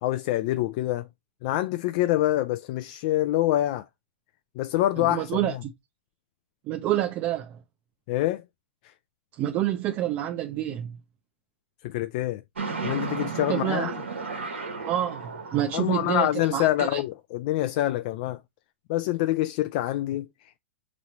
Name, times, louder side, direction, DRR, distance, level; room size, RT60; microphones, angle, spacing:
voice 1, 0.0-1.1 1.4-3.9 4.6-5.6 8.1-8.4 11.8-12.4 12.8-13.9 15.7-18.4 18.9-20.3, left 15 dB, 45° left, 0.3 m, -26 dB
voice 2, 5.0-5.7 6.7-7.6 9.4-11.0 13.5-13.9 14.8-17.0, right 12 dB, 30° right, 0.5 m, -28 dB
sound 1, 12.6-16.8, right 5 dB, 90° right, 1.3 m, -34 dB
5.5 x 3.1 x 2.8 m
hypercardioid pair, 130°, 6 cm